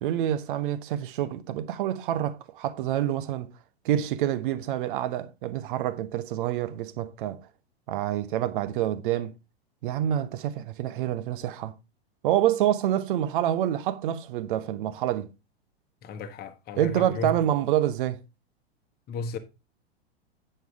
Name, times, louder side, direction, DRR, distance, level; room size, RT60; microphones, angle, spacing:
voice 1, 0.0-3.5 3.8-7.4 7.9-9.3 9.8-11.7 12.2-15.3 16.8-18.2, right 11 dB, 55° right, 0.9 m, -27 dB
voice 2, 16.0-17.4 19.1-19.4, left 3 dB, 30° left, 1.2 m, -34 dB
9.3 x 6.7 x 3.5 m
figure-of-eight pair, 100°, 32 cm